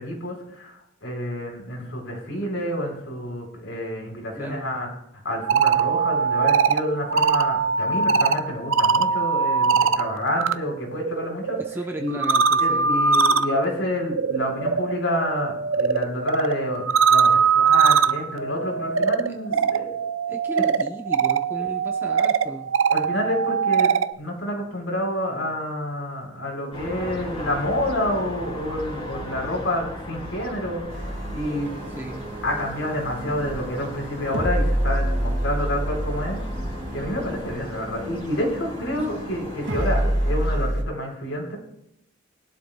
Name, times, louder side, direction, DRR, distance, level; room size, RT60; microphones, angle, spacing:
voice 1, 0.0-4.9 5.1-11.6 12.0-12.2 12.6-19.9 20.5-20.6 22.9-31.7 32.4-36.4 36.9-41.6, left 1 dB, 75° left, 0 dB, 4.5 m, -28 dB
voice 2, 4.4-4.7 11.6-12.9 20.3-22.7 32.0-32.2, right 1 dB, 10° right, 2 dB, 0.8 m, -35 dB
sound 1, 5.3-10.5 10.9-24.1, right 5 dB, 85° right, 0.6 m, -22 dB
sound 2, 26.7-40.6, equal, 30° left, 3.4 m, -37 dB
sound 3, 30.9-40.8, right 1 dB, 65° right, 1.8 m, -28 dB
21.5 x 12.0 x 2.3 m, 0.77 s
head